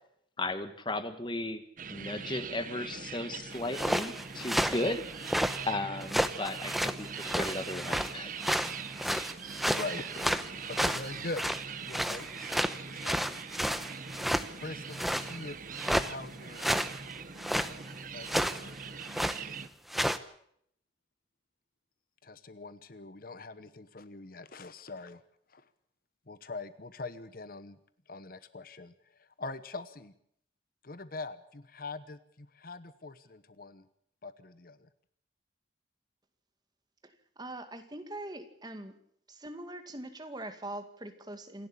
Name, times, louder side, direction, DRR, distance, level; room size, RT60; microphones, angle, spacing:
voice 1, 0.4-1.6 1.9-5.0 5.6-8.3, left 2 dB, 25° left, 10 dB, 1.5 m, -35 dB
sound 1, 1.8-19.7, right 6 dB, 45° right, 1.0 m, -42 dB
sound 2, 3.6-5.7 6.0-8.1 8.4-11.6 11.9-14.5 14.9-15.4 15.8-16.1 16.6-17.0 17.4-17.7 18.3-18.6 19.0-19.4 19.9-20.2, equal, ahead, 0.9 m, -31 dB
voice 2, 9.7-12.6 12.9-13.3 14.5-15.6 16.0-16.9 18.0-19.0 22.2-25.2 25.5-25.7 26.3-27.8 28.1-30.1 30.8-33.9 34.2-34.9, left 3 dB, 50° left, 14 dB, 1.0 m, -43 dB
voice 3, 37.4-38.9 39.3-41.7, right 1 dB, 25° right, 8 dB, 2.1 m, -42 dB
27.5 x 11.5 x 8.5 m, 0.69 s
head